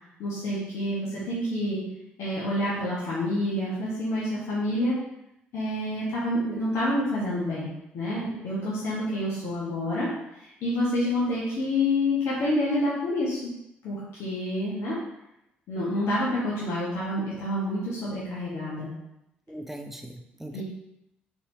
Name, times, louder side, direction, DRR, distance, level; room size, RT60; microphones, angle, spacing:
voice 1, 0.2-1.8 2.2-4.9 5.5-10.1 10.4-13.5 13.8-15.0 15.7-18.9 20.5-20.6, left 1 dB, 60° left, -8 dB, 1.4 m, -28 dB
voice 2, 19.5-20.6, right 1 dB, 5° right, 3 dB, 0.7 m, -40 dB
4.2 x 4.1 x 2.8 m, 0.84 s
figure-of-eight pair, 45°, 5 cm